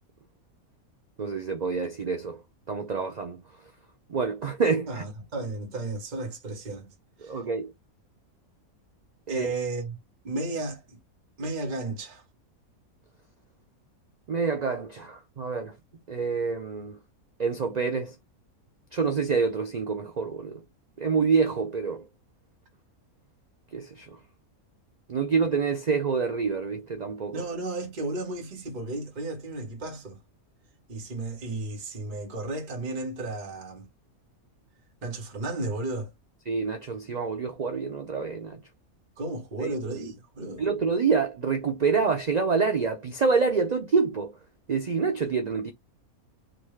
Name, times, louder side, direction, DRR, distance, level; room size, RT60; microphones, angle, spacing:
voice 1, 1.2-2.4 2.7-3.4 4.1-5.0 7.2-7.7 9.3-9.5 14.3-15.7 16.1-17.0 17.4-18.1 18.9-20.6 21.0-22.0 23.7-24.2 25.1-27.4 36.5-38.6 39.6-39.7 40.6-44.3 44.7-45.7, right 5 dB, 85° right, 0.3 m, -27 dB
voice 2, 4.9-6.9 7.2-7.4 9.3-10.0 10.2-11.0 11.4-12.2 27.3-30.2 30.9-33.9 35.0-36.1 39.2-40.6, right 2 dB, 35° right, 1.2 m, -33 dB
3.7 x 2.3 x 3.1 m
omnidirectional pair, 1.5 m